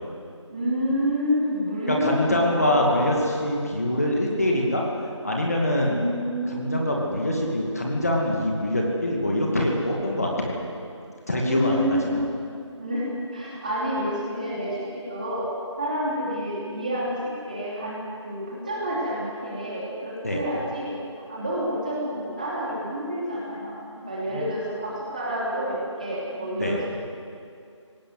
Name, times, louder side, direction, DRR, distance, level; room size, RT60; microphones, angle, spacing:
voice 1, 0.5-3.0 5.8-6.7 11.4-12.1 12.8-15.5 15.8-17.2 17.5-18.0 18.2-20.9 21.3-26.9, equal, 15° right, -6 dB, 2.9 m, -28 dB
voice 2, 1.9-4.8 5.2-6.0 6.5-10.6 11.3-12.2 20.2-20.4 24.3-24.4 26.6-26.8, left 1 dB, 30° left, -1 dB, 2.4 m, -24 dB
20.0 x 18.0 x 8.0 m, 2.4 s
figure-of-eight pair, 175°, 16 cm